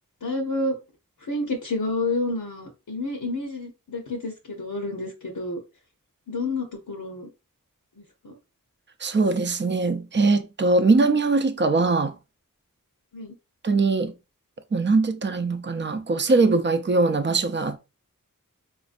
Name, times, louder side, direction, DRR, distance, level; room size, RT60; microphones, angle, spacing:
voice 1, 0.2-0.8 1.2-5.6 6.3-7.3 8.2-8.4 13.1-13.4, left 2 dB, 75° left, 0.8 m, -29 dB
voice 2, 9.0-12.1 13.6-14.1 14.7-17.8, right 3 dB, 35° right, 0.5 m, -21 dB
4.2 x 2.5 x 2.5 m
wide cardioid pair, 50°, 34 cm